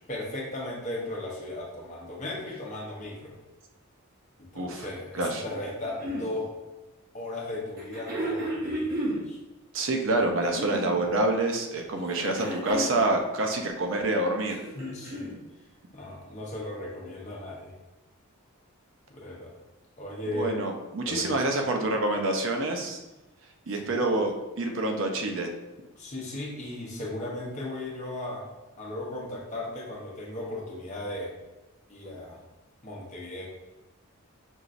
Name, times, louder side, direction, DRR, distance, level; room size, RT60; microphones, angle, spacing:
voice 1, 0.1-3.3 4.4-6.5 7.1-9.4 14.7-15.3 15.9-17.7 19.1-19.5 20.0-20.5 21.0-21.4 23.7-24.0 25.9-28.5 28.8-31.3 31.9-32.4 32.8-33.5, left 1 dB, 35° left, -3 dB, 0.8 m, -36 dB
voice 2, 4.5-4.9 5.1-5.4 9.7-14.6 20.3-23.0 23.7-25.5, right 2 dB, 60° right, 3 dB, 0.5 m, -27 dB
sound 1, 5.5-6.3 7.8-9.2 10.3-11.0 12.0-13.0 14.4-15.4 16.5-16.6, equal, 40° right, 0.9 m, -33 dB
5.4 x 2.9 x 2.5 m, 1.0 s
head